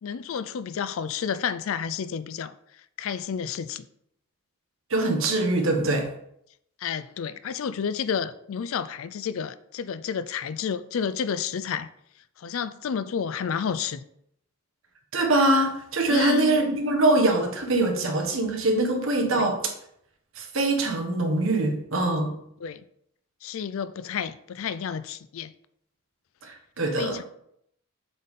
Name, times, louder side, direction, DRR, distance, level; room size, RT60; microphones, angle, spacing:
voice 1, 0.0-2.5 3.0-3.9 6.8-11.9 12.4-14.0 16.1-16.6 19.3-19.5 22.6-22.8 23.4-25.5 27.0-27.2, left 7 dB, 70° left, 0.4 m, -30 dB
voice 2, 4.9-6.1 15.1-19.7 20.4-22.3 26.4-27.2, right 2 dB, 65° right, 1.2 m, -23 dB
7.6 x 4.1 x 3.6 m
head